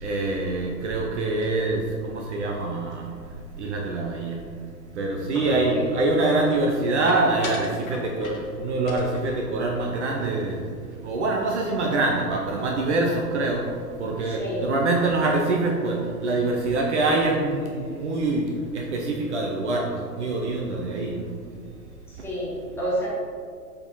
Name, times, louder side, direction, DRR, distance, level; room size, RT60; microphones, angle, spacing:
voice 1, 0.0-3.0 3.6-4.4 5.0-10.6 11.0-13.6 14.0-16.0 16.2-18.5 18.7-21.3, right 2 dB, 45° right, 0 dB, 0.7 m, -25 dB
sound 1, 5.3-5.9 7.1-8.6 8.9-10.6 10.9-11.1 11.4-11.8, left 4 dB, 55° left, 1.1 m, -39 dB
voice 2, 5.4-5.9 14.3-14.7 22.1-23.1, equal, 5° left, -8 dB, 1.5 m, -30 dB
6.9 x 3.8 x 4.1 m, 2.2 s
figure-of-eight pair, 115°, 49 cm